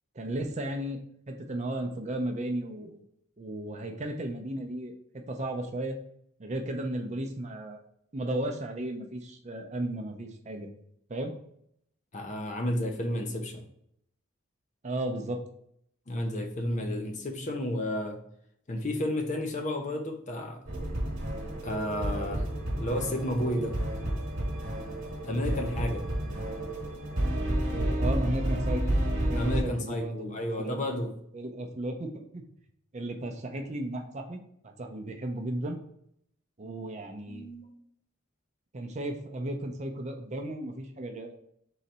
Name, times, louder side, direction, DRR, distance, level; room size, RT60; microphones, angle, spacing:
voice 1, 0.1-1.0 1.3-3.0 3.4-4.9 5.3-5.9 6.4-7.8 8.1-10.7 11.1-11.3 14.8-15.4 27.7-28.8 29.2-30.8 31.3-32.4 32.9-34.4 34.6-35.8 36.6-37.4 38.7-41.4, right 1 dB, 35° right, 4 dB, 0.6 m, -34 dB
voice 2, 12.1-13.6 16.1-18.2 18.7-20.6 21.6-22.4 22.8-23.8 25.2-26.0 29.3-31.1 36.6-36.7 37.3-37.7, left 1 dB, 35° left, 4 dB, 0.6 m, -31 dB
sound 1, 20.7-29.6, right 1 dB, 60° right, 1.2 m, -30 dB
3.9 x 3.2 x 4.2 m, 0.71 s
head